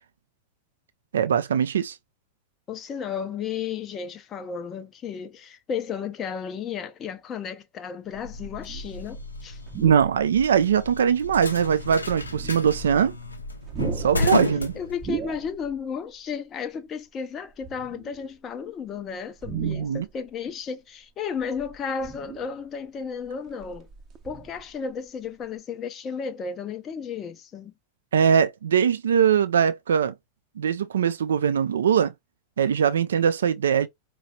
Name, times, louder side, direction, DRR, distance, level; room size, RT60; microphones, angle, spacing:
voice 1, 1.1-2.0 9.8-13.1 14.0-14.7 19.5-20.1 28.1-30.1 30.6-32.1 32.6-33.9, right 8 dB, 65° right, 0.4 m, -21 dB
voice 2, 2.7-9.6 14.2-14.5 14.8-23.9 24.2-27.7, left 6 dB, 25° left, 0.5 m, -33 dB
sound 1, 8.1-15.5, left 2 dB, 80° left, 0.6 m, -32 dB
sound 2, 8.3-9.0 9.6-10.3 10.9-11.0 12.1-13.3 13.6-15.8 16.1-16.3 17.5-18.4 19.3-20.3 21.4-22.7 23.2-24.9 25.3-25.4, right 7 dB, 30° right, 0.7 m, -39 dB
4.6 x 3.0 x 2.3 m
figure-of-eight pair, 90°, 0 cm